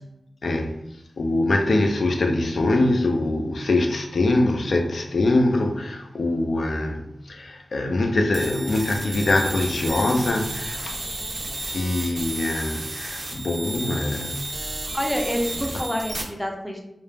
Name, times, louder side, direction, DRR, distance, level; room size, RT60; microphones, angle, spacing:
voice 1, 0.4-0.7 1.2-11.2 11.7-14.4 15.7-15.8, left 2 dB, 65° left, 0.4 m, -23 dB
sound 1, 8.3-16.2, right 2 dB, 55° right, 0.4 m, -33 dB
voice 2, 14.9-16.8, equal, 5° left, 0.4 m, -27 dB
2.3 x 2.0 x 3.2 m
wide cardioid pair, 110°, 0 cm